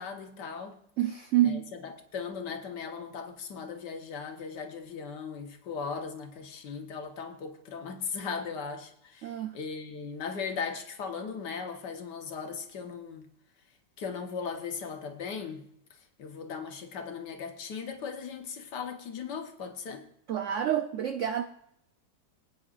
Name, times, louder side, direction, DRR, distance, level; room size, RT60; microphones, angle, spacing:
voice 1, 0.0-0.8 1.4-13.3 14.0-15.6 16.2-20.0, left 5 dB, 65° left, 1.7 m, -38 dB
voice 2, 1.0-1.7 9.2-9.6 20.3-21.4, right 11 dB, 80° right, 0.6 m, -28 dB
25.0 x 9.0 x 2.5 m
omnidirectional pair, 2.0 m